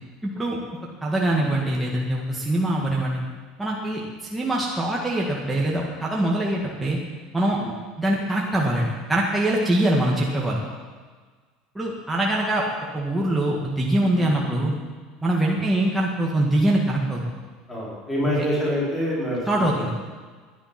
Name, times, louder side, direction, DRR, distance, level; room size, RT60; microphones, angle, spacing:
voice 1, 0.2-0.6 1.0-3.2 3.6-7.0 7.3-7.6 8.0-10.6 11.8-12.7 12.9-14.7 15.2-17.2 19.5-19.9, right 1 dB, 5° right, -3 dB, 1.9 m, -23 dB
voice 2, 17.7-19.9, equal, 10° left, -6 dB, 4.7 m, -27 dB
18.5 x 10.5 x 6.0 m, 1.5 s
cardioid pair, 150°, 0 cm